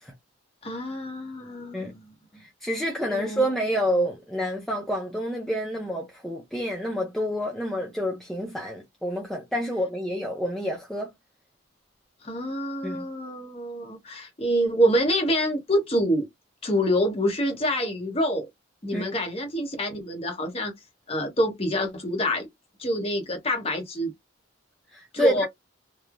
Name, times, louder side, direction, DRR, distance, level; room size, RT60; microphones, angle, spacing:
voice 1, 0.6-2.1 3.1-3.4 12.2-16.3 16.6-18.5 18.8-20.7 21.1-22.5 22.8-24.1 25.1-25.5, equal, 30° left, 0.8 m, -26 dB
voice 2, 2.4-11.1 12.8-13.0 18.9-19.1 24.9-25.4, equal, ahead, 0.4 m, -28 dB
3.0 x 2.0 x 2.4 m
head